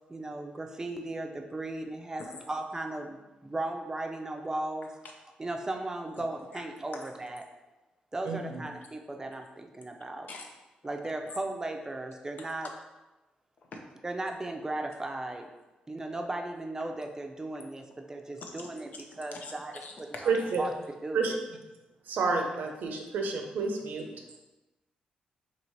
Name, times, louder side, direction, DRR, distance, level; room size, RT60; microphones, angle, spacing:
voice 1, 0.1-4.9 5.4-7.4 8.1-10.3 10.8-12.7 14.0-15.5 15.9-20.3 20.6-21.4, right 2 dB, 20° right, 4 dB, 0.5 m, -36 dB
voice 2, 8.2-8.6 20.3-20.6 21.1-21.3 22.1-24.1, right 4 dB, 80° right, 3 dB, 0.6 m, -29 dB
voice 3, 19.8-20.3, left 3 dB, 65° left, 2 dB, 0.6 m, -42 dB
3.0 x 2.7 x 4.5 m, 1.1 s
cardioid pair, 80°, 3 cm